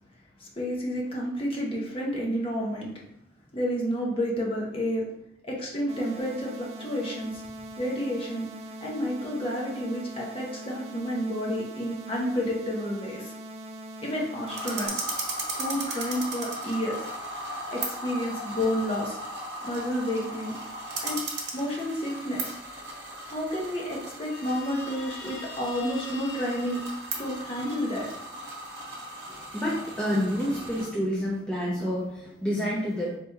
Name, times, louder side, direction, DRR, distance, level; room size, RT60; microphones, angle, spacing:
voice 1, 0.4-2.9 3.5-5.0 5.4-7.4 7.8-8.5 8.8-13.3 14.0-15.1 15.6-17.0 17.7-19.2 19.6-20.6 21.0-21.2 21.5-22.5 23.3-26.8 27.2-28.1, equal, 30° left, -3 dB, 0.9 m, -30 dB
sound 1, 5.9-14.9, right 1 dB, 30° right, 0.3 m, -42 dB
sound 2, 14.5-30.9, right 2 dB, 65° right, 0.9 m, -37 dB
Guitar, 24.3-27.9, left 4 dB, 60° left, 0.6 m, -45 dB
voice 2, 29.5-33.2, equal, 5° left, -7 dB, 0.6 m, -28 dB
4.2 x 2.9 x 3.5 m, 0.78 s
head